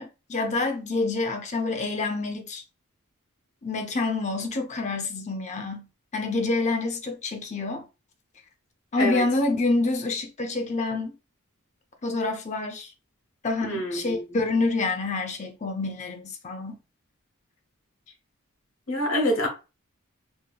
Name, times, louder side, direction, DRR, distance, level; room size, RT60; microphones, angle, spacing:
voice 1, 0.0-2.6 3.6-5.9 6.1-7.8 8.9-11.1 12.0-12.9 13.4-16.8, left 3 dB, 35° left, 0.6 m, -27 dB
voice 2, 13.6-14.2 18.9-19.5, left 1 dB, 65° left, 1.2 m, -26 dB
2.8 x 2.8 x 2.3 m
head